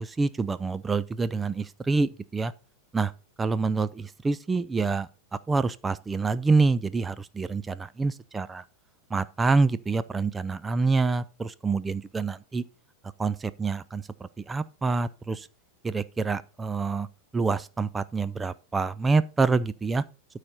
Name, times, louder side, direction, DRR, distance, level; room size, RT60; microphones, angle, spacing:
voice 1, 0.0-2.5 2.9-3.1 3.4-5.1 5.5-8.6 9.1-12.6 13.2-15.5 15.8-17.1 17.3-20.0, right 4 dB, 15° right, 0.4 m, -26 dB
13.0 x 4.9 x 4.2 m
figure-of-eight pair, 90°, 0 cm